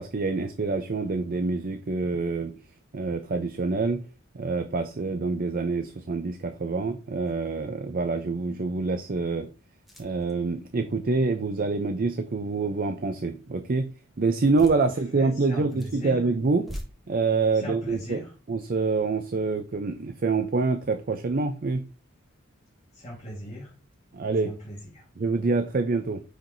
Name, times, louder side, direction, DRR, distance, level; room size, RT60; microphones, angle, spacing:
voice 1, 0.0-2.5 2.9-4.0 4.3-9.5 10.0-13.9 14.2-16.7 17.1-18.2 18.5-21.8 24.1-24.5 25.2-26.2, right 3 dB, 45° right, 8 dB, 0.5 m, -26 dB
sound 1, 7.2-7.7 8.2-8.3 9.8-10.4 14.4-14.8 15.5-16.0 16.5-16.8, equal, ahead, 1.4 m, -42 dB
voice 2, 14.8-16.2 17.5-18.3 22.9-23.7 24.4-25.1, equal, 35° left, -4 dB, 1.6 m, -39 dB
9.2 x 4.5 x 2.6 m, 0.35 s
head